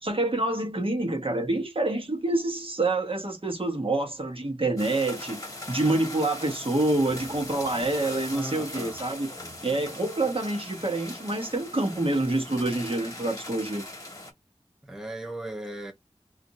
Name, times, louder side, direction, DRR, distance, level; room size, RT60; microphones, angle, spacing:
voice 1, 0.0-9.3 9.6-13.8, right 2 dB, 55° right, 1.1 m, -27 dB
sound 1, 4.8-14.3, left 1 dB, 30° left, 1.1 m, -40 dB
voice 2, 8.3-9.0 9.4-9.9 14.8-15.9, right 1 dB, 5° right, 0.7 m, -38 dB
2.5 x 2.5 x 4.0 m
wide cardioid pair, 55°, 11 cm